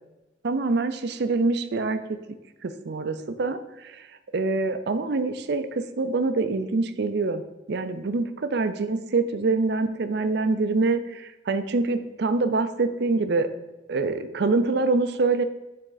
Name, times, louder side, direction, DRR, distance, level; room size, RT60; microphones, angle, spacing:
voice 1, 0.4-2.2 2.6-4.1 4.3-7.4 7.7-13.5 13.9-15.4, right 3 dB, 65° right, 10 dB, 0.5 m, -25 dB
9.0 x 3.7 x 3.9 m, 1.1 s
head